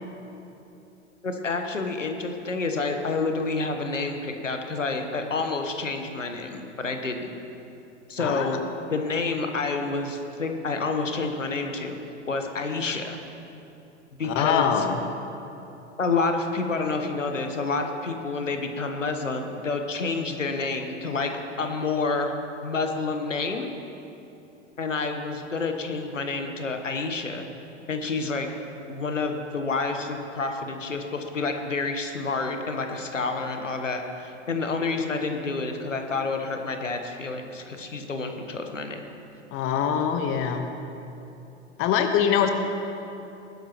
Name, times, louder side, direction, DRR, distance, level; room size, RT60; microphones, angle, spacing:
voice 1, 1.2-7.3 8.1-8.6 8.9-12.0 12.3-13.2 14.2-14.8 16.0-21.3 21.6-22.3 22.6-23.7 24.8-27.4 27.9-28.5 28.9-39.0, left 3 dB, 85° left, 5 dB, 1.2 m, -29 dB
voice 2, 8.2-8.6 14.2-15.0 39.5-40.7 41.8-42.5, left 8 dB, 35° left, 6 dB, 1.1 m, -23 dB
19.5 x 12.0 x 3.0 m, 2.9 s
figure-of-eight pair, 90°, 37 cm